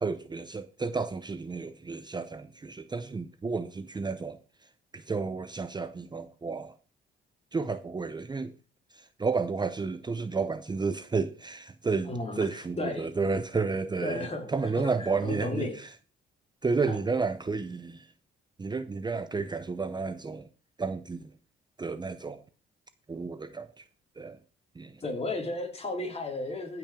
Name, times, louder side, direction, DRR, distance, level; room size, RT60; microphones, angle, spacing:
voice 1, 0.0-6.8 7.5-8.5 8.9-15.9 16.6-18.1 18.6-20.5 20.8-21.3 21.8-22.4 23.1-23.8 24.2-24.4 24.7-25.0, right 4 dB, 20° right, 0.7 m, -32 dB
voice 2, 12.1-12.5 12.8-13.1 14.0-14.5 15.0-15.8 16.9-17.0 25.0-26.8, left 2 dB, 30° left, 3.8 m, -33 dB
15.0 x 6.0 x 5.0 m
cardioid pair, 90°, 20 cm